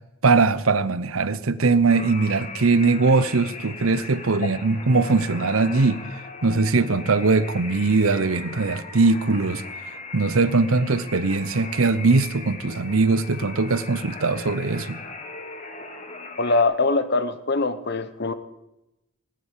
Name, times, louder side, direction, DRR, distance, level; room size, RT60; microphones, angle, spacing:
voice 1, 0.2-9.6 10.1-15.0, right 3 dB, 80° right, 0.8 m, -21 dB
sound 1, 1.9-16.6, left 3 dB, 35° left, 1.8 m, -39 dB
voice 2, 16.4-18.3, left 3 dB, 50° left, 1.1 m, -22 dB
19.5 x 8.4 x 8.4 m
head